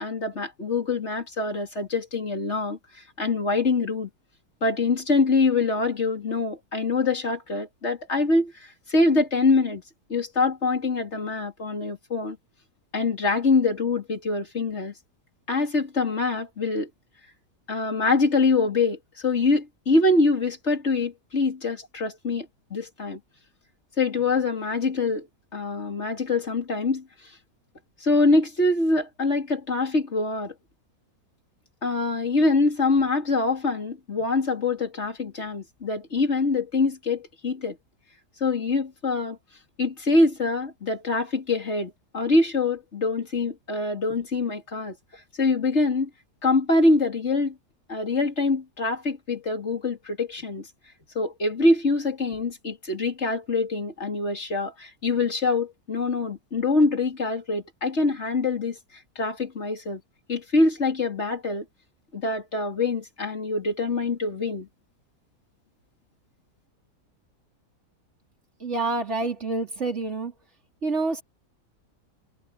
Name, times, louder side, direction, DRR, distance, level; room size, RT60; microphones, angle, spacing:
voice 1, 0.0-2.8 3.2-4.1 4.6-9.8 10.1-12.4 12.9-14.9 15.5-16.9 17.7-23.2 24.0-25.3 25.5-27.0 28.0-30.5 31.8-37.8 38.4-39.4 39.8-44.9 45.4-46.1 46.4-47.5 47.9-50.7 51.1-58.8 59.1-60.0 60.3-61.6 62.1-64.7, left 3 dB, 45° left, 3.2 m, -24 dB
voice 2, 68.6-70.3 70.8-71.2, right 3 dB, 45° right, 4.2 m, -27 dB
omnidirectional pair, 1.7 m